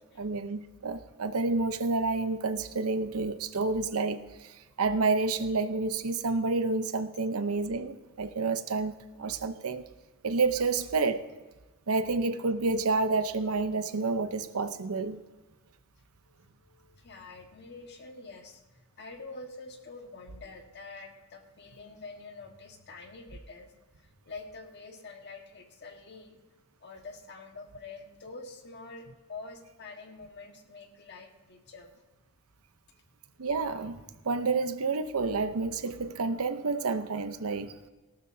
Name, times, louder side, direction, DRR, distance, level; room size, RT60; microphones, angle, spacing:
voice 1, 0.2-4.2 4.8-8.9 9.2-9.8 10.2-11.3 11.9-15.2 33.4-37.7, right 3 dB, 80° right, 0.8 m, -29 dB
voice 2, 16.2-26.4 26.8-31.9, left 3 dB, 50° left, 1.6 m, -46 dB
18.0 x 12.5 x 2.8 m
head